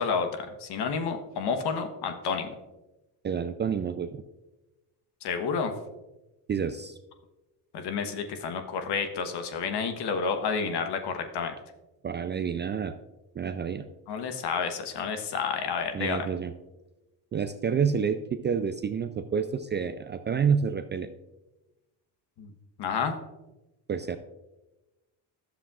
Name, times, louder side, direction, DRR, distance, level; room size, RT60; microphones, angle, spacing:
voice 1, 0.0-2.5 5.2-5.7 7.7-11.5 14.1-16.3 22.4-22.5 22.8-23.2, left 5 dB, 60° left, 7 dB, 1.2 m, -30 dB
voice 2, 3.2-4.2 6.5-7.0 12.0-12.9 13.4-13.8 15.9-16.5 17.3-21.1 23.9-24.2, right 6 dB, 25° right, 10 dB, 0.3 m, -28 dB
11.5 x 7.1 x 2.4 m, 1.0 s
supercardioid pair, 70°, 46 cm